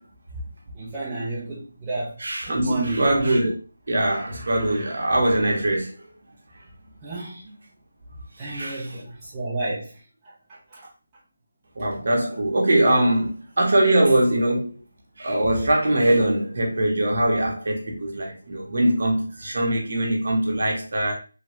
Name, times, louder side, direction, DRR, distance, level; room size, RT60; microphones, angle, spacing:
voice 1, 0.8-2.2 2.5-3.1 7.0-7.4 8.4-9.9 10.3-10.4 10.7-10.8, right 2 dB, 10° right, 0.5 m, -30 dB
voice 2, 2.2-3.5 3.9-5.9 8.5-9.0 11.8-14.7 15.2-21.1, right 1 dB, 45° right, 0.9 m, -22 dB
3.1 x 2.3 x 2.9 m
figure-of-eight pair, 180°, 0 cm